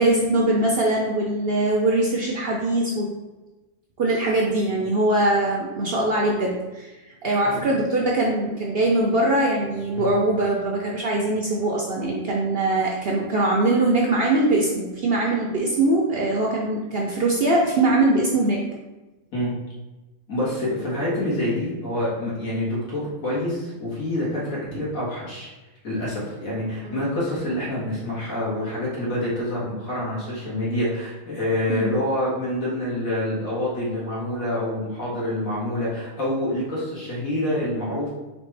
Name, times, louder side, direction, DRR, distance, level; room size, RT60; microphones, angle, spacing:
voice 1, 0.0-3.1 4.0-18.6 26.8-27.0 31.7-31.9, right 2 dB, 60° right, -2 dB, 0.7 m, -22 dB
voice 2, 20.3-25.5 25.8-38.1, left 1 dB, 70° left, -7 dB, 2.1 m, -27 dB
4.2 x 3.6 x 3.2 m, 1.1 s
omnidirectional pair, 1.5 m